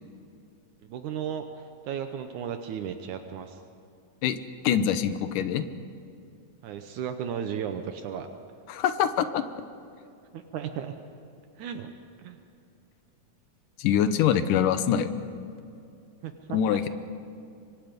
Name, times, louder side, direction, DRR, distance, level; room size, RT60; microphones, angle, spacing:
voice 1, 0.8-3.6 6.6-8.3 10.3-10.9 11.6-11.9 12.2-12.4 16.2-16.8, right 8 dB, 75° right, 7 dB, 2.3 m, -35 dB
voice 2, 4.6-5.7 8.7-9.4 13.8-15.1 16.5-16.9, left 9 dB, 80° left, 11 dB, 2.5 m, -24 dB
26.0 x 24.5 x 5.2 m, 2.5 s
omnidirectional pair, 3.7 m